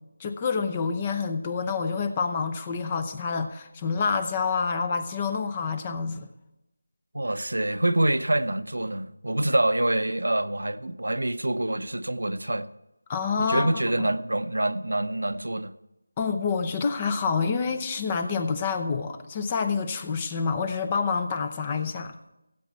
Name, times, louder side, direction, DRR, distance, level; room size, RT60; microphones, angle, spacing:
voice 1, 0.2-6.3 13.1-14.1 16.2-22.1, left 5 dB, 20° left, 0.6 m, -28 dB
voice 2, 7.1-12.7 13.4-15.7, right 1 dB, 85° right, 0.8 m, -26 dB
16.0 x 8.2 x 4.5 m
figure-of-eight pair, 170°, 0 cm